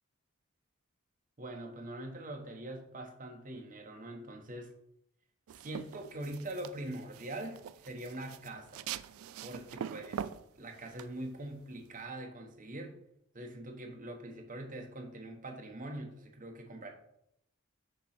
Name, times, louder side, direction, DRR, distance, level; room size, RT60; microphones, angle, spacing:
voice 1, 1.4-4.7 5.5-8.8 9.4-10.3 10.6-12.9 13.3-16.9, right 1 dB, 40° right, 2 dB, 1.1 m, -43 dB
sound 1, 5.5-12.0, right 8 dB, 80° right, 0.3 m, -44 dB
6.8 x 3.1 x 5.8 m, 0.76 s
head